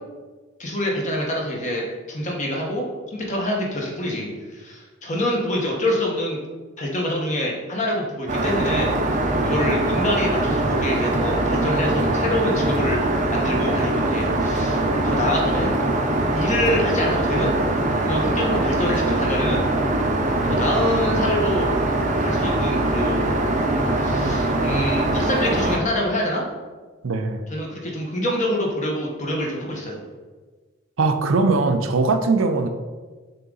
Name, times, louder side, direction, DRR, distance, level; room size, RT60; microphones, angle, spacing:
voice 1, 0.6-6.4 6.8-8.9 9.4-13.0 13.3-15.7 16.3-17.6 18.0-19.7 20.4-21.7 22.2-23.3 23.9-26.4 27.5-30.0, left 1 dB, 40° left, -1 dB, 1.3 m, -26 dB
Aircraft, 8.3-25.8, right 2 dB, 35° right, 0.6 m, -22 dB
voice 2, 27.0-27.4 31.0-32.7, right 3 dB, 85° right, 7 dB, 0.6 m, -20 dB
6.7 x 3.7 x 3.9 m, 1.3 s
head